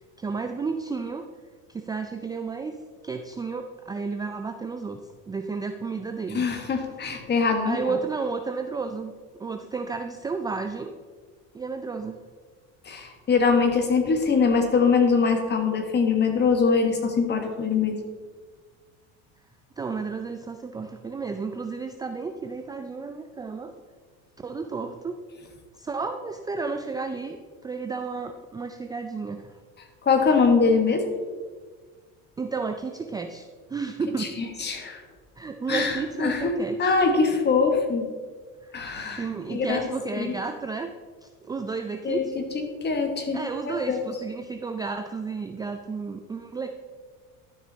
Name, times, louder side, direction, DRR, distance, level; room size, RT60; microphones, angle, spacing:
voice 1, 0.2-1.3 1.7-2.8 3.0-5.0 5.3-6.5 7.7-11.0 11.5-12.2 19.8-23.7 24.4-25.2 25.8-29.5 32.4-34.3 35.4-37.0 38.6-42.4 43.3-46.7, right 4 dB, 10° right, 6 dB, 0.3 m, -32 dB
voice 2, 6.3-7.9 12.8-18.0 30.0-31.0 34.2-35.0 35.7-38.1 38.7-39.9 40.2-40.3 42.0-42.4 42.8-43.4 43.7-44.0, left 5 dB, 30° left, 5 dB, 1.5 m, -23 dB
12.0 x 6.1 x 4.0 m, 1.5 s
cardioid pair, 125°, 34 cm